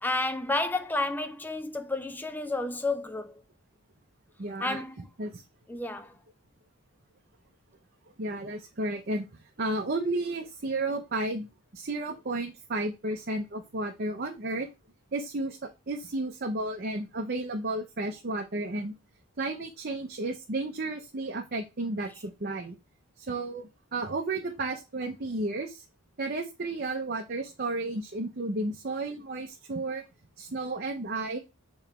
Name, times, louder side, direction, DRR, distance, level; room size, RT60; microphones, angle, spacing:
voice 1, 0.0-3.4 4.6-5.1 5.7-6.1, left 2 dB, 10° left, 0.5 m, -31 dB
voice 2, 4.4-4.8 5.2-5.4 8.2-9.3 9.6-14.7 15.1-18.9 19.4-22.8 23.2-25.8 26.2-30.0 30.4-31.4, right 2 dB, 45° right, 0.7 m, -32 dB
7.0 x 3.2 x 4.3 m
head